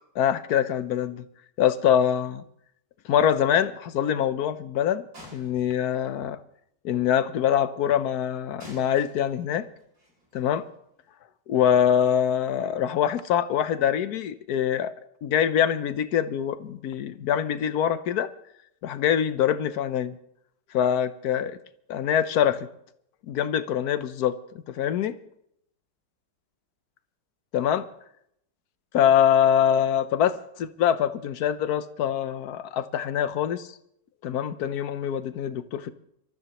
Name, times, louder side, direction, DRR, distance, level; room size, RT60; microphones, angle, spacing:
voice 1, 0.1-1.3 1.6-2.4 3.0-5.1 5.3-6.4 6.8-9.7 10.3-10.6 11.5-14.9 15.2-18.3 18.8-20.2 20.7-21.6 21.9-22.7 23.3-24.4 24.7-25.1 27.5-27.9 28.9-33.7 34.2-35.9, left 9 dB, 65° left, 12 dB, 1.2 m, -24 dB
sound 1, 5.1-6.4 8.6-11.1, equal, 75° right, 8.3 m, -50 dB
26.5 x 13.5 x 3.0 m, 0.75 s
omnidirectional pair, 1.8 m